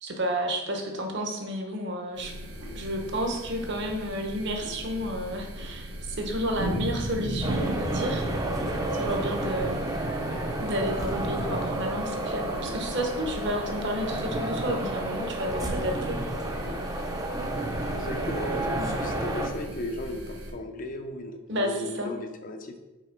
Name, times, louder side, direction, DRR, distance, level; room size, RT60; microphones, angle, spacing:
voice 1, 0.0-2.3 2.7-8.3 8.9-9.8 10.6-16.2 18.7-18.9 21.5-22.1, equal, 55° right, 2 dB, 1.0 m, -31 dB
sound 1, 2.1-20.5, equal, 90° right, 1.8 m, -38 dB
sound 2, 7.4-19.5, right 1 dB, 15° right, 0.6 m, -31 dB
voice 2, 17.9-22.8, left 1 dB, 40° left, 6 dB, 0.5 m, -36 dB
5.6 x 4.1 x 5.1 m, 1.1 s
head